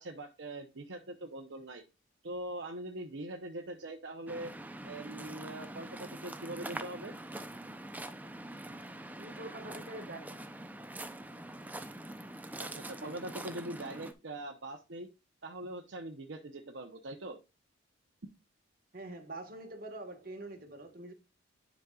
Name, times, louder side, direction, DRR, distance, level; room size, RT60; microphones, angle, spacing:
voice 1, 0.0-1.8 2.2-4.5 4.8-7.1 12.6-15.1 15.4-17.4, right 1 dB, 65° right, 0.9 m, -42 dB
Waves surf, 4.3-14.1, right 1 dB, 10° right, 0.6 m, -44 dB
voice 2, 9.2-10.2 18.9-21.1, right 2 dB, 45° right, 1.6 m, -45 dB
10.5 x 5.3 x 2.4 m
head